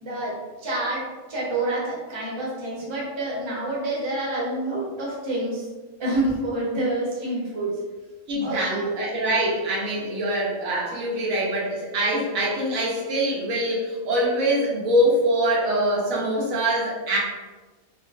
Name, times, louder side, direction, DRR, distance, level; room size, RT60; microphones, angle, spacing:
voice 1, 0.0-0.3 0.6-5.7 6.0-7.8 8.4-8.9, right 2 dB, 25° right, -6 dB, 0.7 m, -28 dB
voice 2, 8.3-17.2, right 1 dB, 85° right, -4 dB, 1.2 m, -24 dB
3.7 x 2.2 x 2.3 m, 1.3 s
omnidirectional pair, 1.4 m